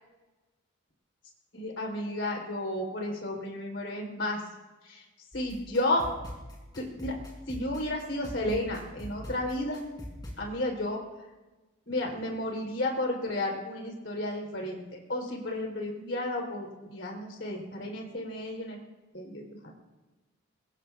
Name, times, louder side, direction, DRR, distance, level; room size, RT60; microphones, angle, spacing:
voice 1, 1.5-4.4 4.8-5.0 5.3-6.1 6.8-7.1 7.5-9.9 10.4-11.0 11.9-18.8 19.1-19.7, left 1 dB, 60° left, 1 dB, 4.0 m, -32 dB
sound 1, 5.3-10.4, equal, 20° left, 3.9 m, -43 dB
23.5 x 21.5 x 2.5 m, 1.2 s
head